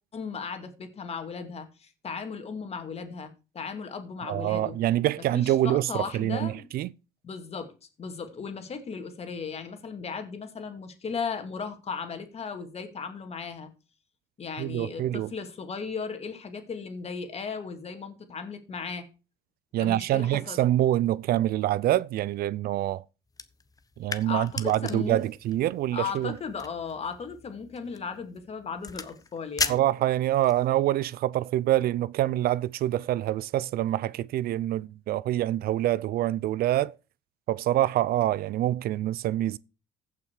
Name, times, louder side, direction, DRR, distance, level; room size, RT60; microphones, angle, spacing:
voice 1, 0.1-4.8 5.3-6.7 7.2-7.7 8.0-13.7 14.4-19.1 19.8-20.6 24.2-25.2 25.9-29.8, left 5 dB, 40° left, 2.4 m, -36 dB
voice 2, 4.2-6.9 14.6-15.3 19.7-23.0 24.0-26.3 29.7-36.9 37.5-39.6, right 13 dB, 65° right, 0.4 m, -26 dB
sound 1, 23.3-30.7, left 4 dB, 20° left, 1.0 m, -38 dB
15.0 x 5.9 x 4.8 m
cardioid pair, 110°, 17 cm